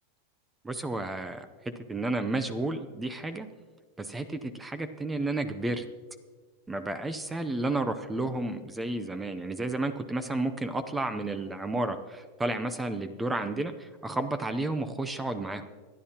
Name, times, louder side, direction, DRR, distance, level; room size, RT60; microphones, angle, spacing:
voice 1, 0.6-1.5 1.9-3.5 4.0-5.9 6.7-15.6, right 2 dB, 10° right, 10 dB, 0.6 m, -31 dB
24.5 x 10.5 x 2.9 m, 1.4 s
supercardioid pair, 145°, 0 cm